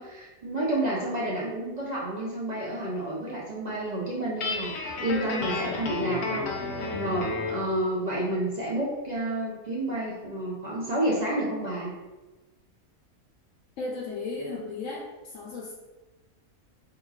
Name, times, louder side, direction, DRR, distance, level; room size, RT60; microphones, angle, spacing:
voice 1, 0.0-6.7 7.0-11.9, right 1 dB, 50° right, -5 dB, 0.5 m, -30 dB
Guitar, 4.4-7.6, left 3 dB, 90° left, 1.2 m, -32 dB
voice 2, 13.8-15.7, left 3 dB, 65° left, -3 dB, 0.9 m, -35 dB
4.8 x 2.9 x 2.3 m, 1.2 s
omnidirectional pair, 1.5 m